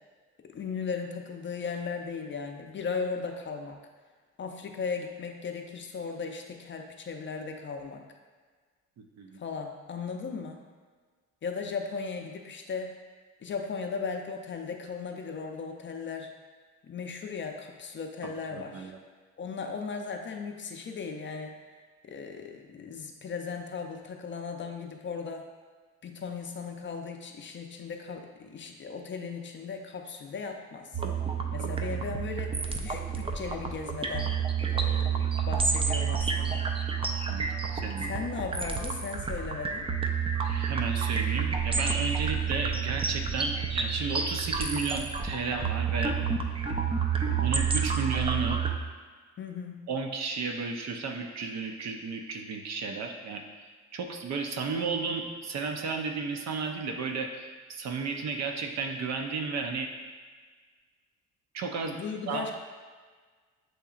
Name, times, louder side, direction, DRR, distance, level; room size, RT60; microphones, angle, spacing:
voice 1, 0.4-3.8 4.4-8.0 9.4-10.6 11.4-13.0 13.4-16.3 16.8-18.9 19.4-21.5 22.0-25.4 26.0-31.0 31.5-34.3 34.6-36.7 38.0-39.9 49.4-49.8 61.9-62.5, left 5 dB, 40° left, 4 dB, 0.5 m, -37 dB
voice 2, 9.0-9.4 18.5-18.9 31.6-32.0 37.3-38.1 40.4-46.1 47.4-48.6 49.9-53.7 53.9-59.9 61.5-62.0 62.3-62.5, right 4 dB, 60° right, 3 dB, 0.7 m, -33 dB
sound 1, 30.9-48.8, right 6 dB, 20° right, 0.4 m, -29 dB
7.6 x 2.8 x 2.4 m, 1.5 s
cardioid pair, 90°, 30 cm